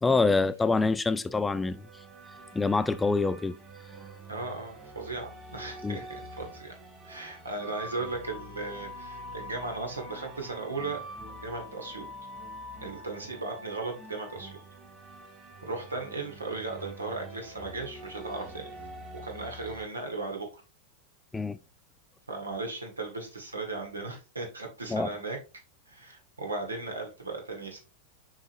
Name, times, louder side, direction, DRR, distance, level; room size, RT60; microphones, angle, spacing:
voice 1, 0.0-1.8 2.5-3.6 5.8-6.0 21.3-21.6 24.9-25.1, left 3 dB, 10° left, 0.3 m, -25 dB
sound 1, 1.6-19.9, right 1 dB, 25° right, 2.7 m, -45 dB
voice 2, 4.3-6.7 7.0-11.0 11.4-12.1 12.8-14.6 15.6-18.7 19.1-20.6 22.3-25.4 25.9-27.8, right 3 dB, 75° right, 1.9 m, -36 dB
7.1 x 5.0 x 2.7 m
figure-of-eight pair, 90°, 0 cm